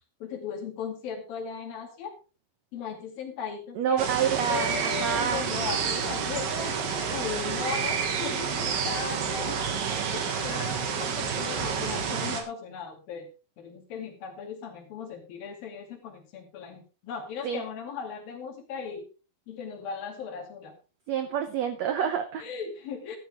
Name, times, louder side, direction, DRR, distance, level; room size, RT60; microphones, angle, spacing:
voice 1, 0.2-2.1 2.7-4.0 4.5-9.6 9.9-13.3 13.6-19.1 19.5-20.7 22.4-23.2, left 6 dB, 70° left, 4 dB, 4.0 m, -37 dB
voice 2, 3.7-5.5 17.4-17.6 21.1-22.5, right 8 dB, 90° right, 9 dB, 1.5 m, -28 dB
sound 1, 4.0-12.4, right 6 dB, 65° right, 3.2 m, -29 dB
12.5 x 12.0 x 3.5 m, 0.32 s
omnidirectional pair, 4.4 m